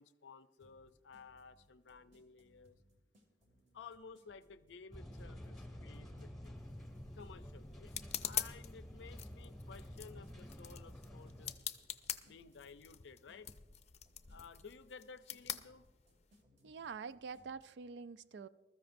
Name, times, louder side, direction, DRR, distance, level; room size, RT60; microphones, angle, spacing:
voice 1, 0.0-2.8 3.7-6.6 7.1-7.9 8.2-11.6 12.2-13.5 14.3-15.9, left 5 dB, 90° left, 0.5 m, -55 dB
sound 1, 0.6-17.6, equal, 40° right, 2.1 m, -69 dB
sound 2, 4.9-11.5, equal, ahead, 1.6 m, -50 dB
sound 3, 6.6-16.4, left 10 dB, 40° left, 0.6 m, -46 dB
voice 2, 16.6-18.5, right 5 dB, 70° right, 0.4 m, -46 dB
20.0 x 13.5 x 2.6 m
head